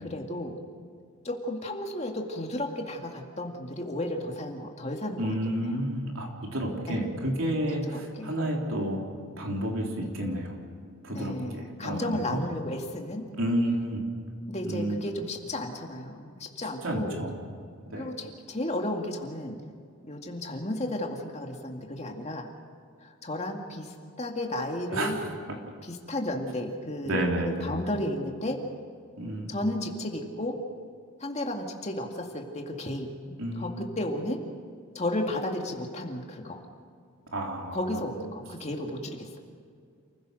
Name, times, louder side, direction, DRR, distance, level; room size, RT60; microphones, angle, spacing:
voice 1, 0.1-0.5 1.2-5.8 6.9-7.0 7.8-8.8 11.1-13.2 14.5-17.2 17.9-19.6 20.0-22.5 23.0-25.2 25.8-28.6 29.5-30.6 31.2-33.1 33.6-34.4 34.9-36.6 37.7-39.4, left 1 dB, 30° left, 2 dB, 2.2 m, -33 dB
voice 2, 5.2-9.0 9.4-10.6 11.0-12.4 13.4-14.0 14.6-15.0 16.8-17.4 17.9-18.1 24.9-25.1 27.0-27.7 29.2-29.6 33.4-33.8 37.3-38.0, right 1 dB, 65° right, 0 dB, 3.5 m, -30 dB
28.5 x 16.0 x 6.6 m, 2.2 s
head